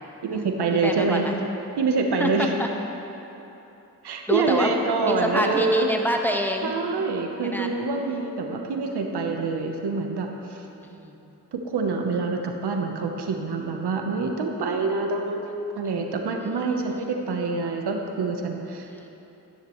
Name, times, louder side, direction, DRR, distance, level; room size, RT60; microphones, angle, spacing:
voice 1, 0.2-1.3 1.8-2.5 4.0-5.9 6.6-10.6 11.5-15.5 15.7-19.1, right 4 dB, 80° right, 3 dB, 1.0 m, -26 dB
voice 2, 0.8-1.3 2.2-2.7 4.3-4.7 5.0-6.7 7.4-7.8 10.8-11.2 16.4-17.2 18.9-19.1, equal, 5° left, 1 dB, 1.3 m, -28 dB
14.0 x 10.0 x 3.1 m, 3.0 s
cardioid pair, 40°, 40 cm